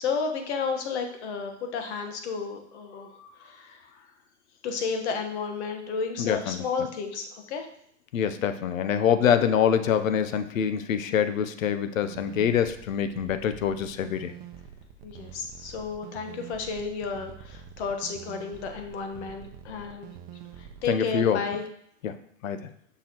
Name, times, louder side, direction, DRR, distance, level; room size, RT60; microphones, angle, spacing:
voice 1, 0.0-4.1 4.6-7.7 15.0-20.1 20.6-21.6, left 5 dB, 60° left, 5 dB, 1.3 m, -32 dB
voice 2, 6.2-6.9 8.1-14.3 20.8-21.4 22.0-22.2 22.4-22.7, left 8 dB, 90° left, 11 dB, 0.7 m, -25 dB
sound 1, 12.0-20.9, right 8 dB, 40° right, 0.7 m, -46 dB
6.1 x 5.8 x 2.9 m, 0.69 s
hypercardioid pair, 130°, 39 cm